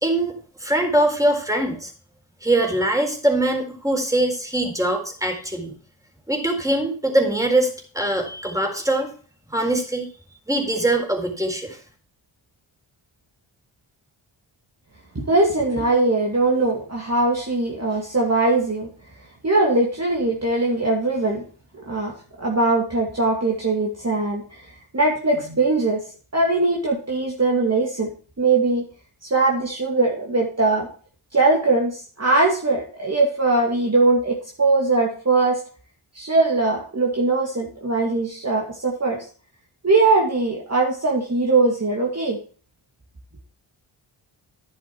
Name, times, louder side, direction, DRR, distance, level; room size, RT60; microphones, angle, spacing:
voice 1, 0.0-1.9 2.4-5.7 6.3-7.7 7.9-9.1 9.5-10.1 10.5-11.8, right 1 dB, 5° right, 3 dB, 4.0 m, -22 dB
voice 2, 15.1-18.9 19.4-21.4 21.7-24.6 24.9-26.0 26.3-28.1 28.4-28.8 29.2-30.9 31.3-35.6 36.1-39.3 39.8-42.4, right 3 dB, 30° right, -1 dB, 2.5 m, -21 dB
10.5 x 7.4 x 4.7 m, 0.41 s
cardioid pair, 55°, 49 cm